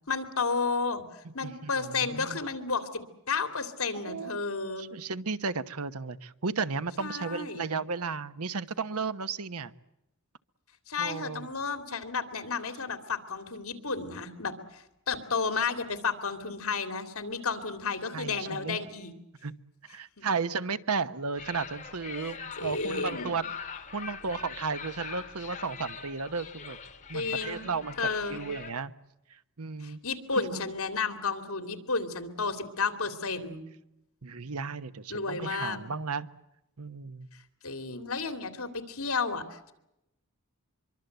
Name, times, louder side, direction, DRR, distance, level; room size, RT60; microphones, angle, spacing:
voice 1, 0.1-3.0 3.3-4.9 7.0-7.6 10.9-19.1 20.2-20.3 22.6-23.3 27.1-27.7 28.0-28.4 29.8-33.6 35.1-35.8 37.6-39.7, left 4 dB, 70° left, 9 dB, 3.0 m, -32 dB
voice 2, 1.2-2.4 4.0-4.5 4.8-9.7 11.0-11.5 18.1-18.8 19.4-19.5 19.9-23.7 23.9-26.8 27.1-28.0 28.3-28.9 29.3-30.0 30.3-30.6 34.2-36.3 36.8-37.3, right 4 dB, 90° right, 13 dB, 1.1 m, -34 dB
sound 1, 21.4-28.7, left 5 dB, 35° left, 2.3 m, -42 dB
24.5 x 24.0 x 8.1 m, 0.87 s
head